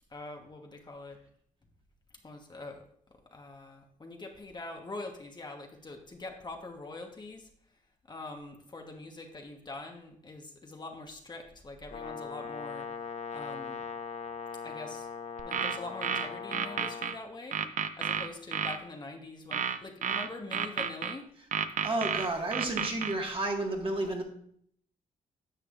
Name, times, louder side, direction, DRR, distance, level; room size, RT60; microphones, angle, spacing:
voice 1, 0.1-1.2 2.2-2.8 3.3-7.5 8.1-12.9 13.3-13.9 14.6-15.1 15.4-17.6 18.0-21.2 22.1-22.4, left 2 dB, 30° left, 2 dB, 1.2 m, -44 dB
Brass instrument, 11.9-17.2, left 5 dB, 50° left, 0.7 m, -40 dB
sound 1, 15.4-17.1 17.5-18.8 19.5-21.1 21.5-23.1, right 7 dB, 60° right, 0.6 m, -31 dB
voice 2, 21.8-24.2, right 2 dB, 35° right, 1 dB, 1.8 m, -31 dB
10.0 x 6.6 x 2.5 m, 0.65 s
cardioid pair, 75°, 15 cm